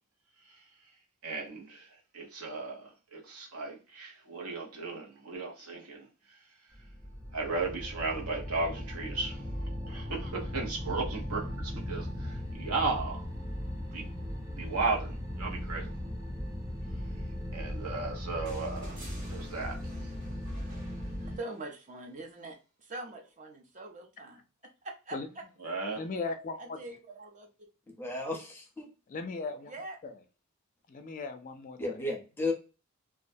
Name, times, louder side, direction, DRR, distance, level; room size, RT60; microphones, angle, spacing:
voice 1, 1.2-1.9 2.1-6.1 7.3-9.4 9.9-13.3 13.9-14.1 14.5-15.9 17.5-19.0 19.3-20.1 25.6-26.0, right 3 dB, 85° right, 0.9 m, -35 dB
sound 1, 6.7-21.4, equal, 15° right, 1.0 m, -38 dB
sound 2, 18.5-21.8 23.3-23.4, right 1 dB, 55° right, 1.0 m, -52 dB
voice 2, 21.4-24.4 24.8-25.1 26.1-26.2 26.6-27.7 29.7-30.0, right 2 dB, 35° right, 0.6 m, -43 dB
voice 3, 26.0-26.8 29.1-29.7 30.0-30.1 30.9-31.8, left 3 dB, 35° left, 0.3 m, -37 dB
voice 4, 27.9-28.9 31.8-32.5, left 2 dB, 10° left, 0.8 m, -34 dB
2.3 x 2.1 x 2.5 m
head